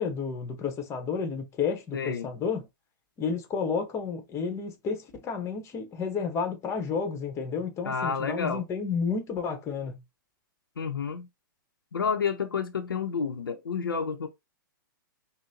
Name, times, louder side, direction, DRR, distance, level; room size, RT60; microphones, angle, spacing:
voice 1, 0.0-2.7 3.2-10.0, left 5 dB, 25° left, 1.0 m, -31 dB
voice 2, 1.9-2.3 7.8-8.6 10.8-11.3 11.9-14.3, left 6 dB, 85° left, 0.6 m, -30 dB
5.2 x 2.1 x 2.7 m
hypercardioid pair, 115°, 11 cm